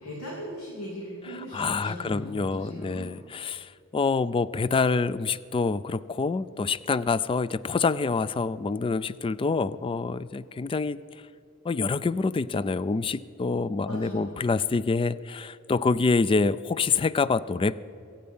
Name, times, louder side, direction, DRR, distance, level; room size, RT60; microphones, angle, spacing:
voice 1, 0.0-3.1 13.8-14.4, equal, 80° left, -4 dB, 2.9 m, -39 dB
voice 2, 1.5-11.0 11.6-17.8, left 4 dB, 25° left, 17 dB, 0.3 m, -26 dB
23.5 x 8.8 x 5.4 m, 2.6 s
head